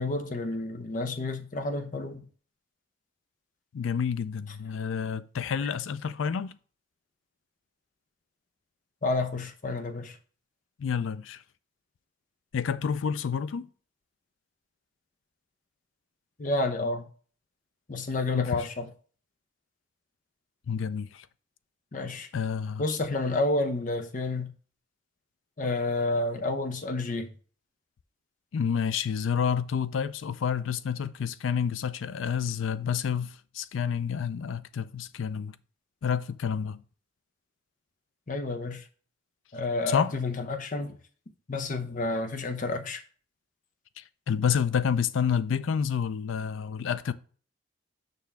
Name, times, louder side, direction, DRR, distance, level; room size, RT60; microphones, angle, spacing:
voice 1, 0.0-2.2 9.0-10.2 16.4-17.1 17.9-18.9 21.9-22.3 22.8-24.5 25.6-27.3 38.3-38.8 39.5-41.0 41.5-43.0, left 2 dB, 40° left, 0.7 m, -30 dB
voice 2, 3.7-6.6 10.8-11.4 12.5-13.7 18.3-18.7 20.7-21.3 22.3-22.8 28.5-35.6 36.0-36.8 39.9-40.2 44.0-47.1, left 7 dB, 75° left, 0.4 m, -29 dB
6.8 x 5.9 x 3.4 m
head